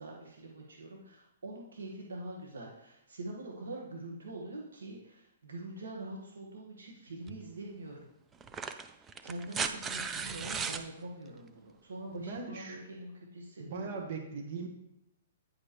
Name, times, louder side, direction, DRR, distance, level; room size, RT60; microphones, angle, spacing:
voice 1, 0.0-8.1 9.2-14.0, right 2 dB, 90° right, -2 dB, 1.4 m, -44 dB
sound 1, 7.3-7.4 8.4-10.9 12.4-12.5, right 5 dB, 15° right, 0.4 m, -36 dB
voice 2, 12.1-12.8 13.6-14.7, right 5 dB, 50° right, 2 dB, 1.3 m, -40 dB
9.3 x 5.2 x 3.0 m, 0.82 s
hypercardioid pair, 140°, 0 cm